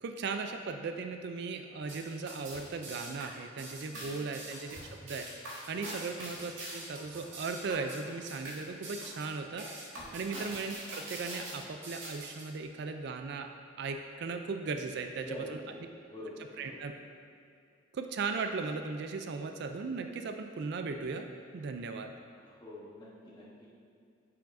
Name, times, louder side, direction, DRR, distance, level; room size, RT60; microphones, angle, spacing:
voice 1, 0.0-5.3 5.7-9.7 10.1-13.5 13.8-15.6 16.6-16.9 17.9-21.3 21.5-22.1, right 4 dB, 60° right, 6 dB, 0.4 m, -37 dB
sound 1, 1.9-12.4, right 1 dB, 85° right, 1.6 m, -44 dB
voice 2, 15.0-15.6 16.1-16.8 22.3-23.7, left 1 dB, 25° left, -7 dB, 1.4 m, -46 dB
8.7 x 5.8 x 2.6 m, 2.4 s
head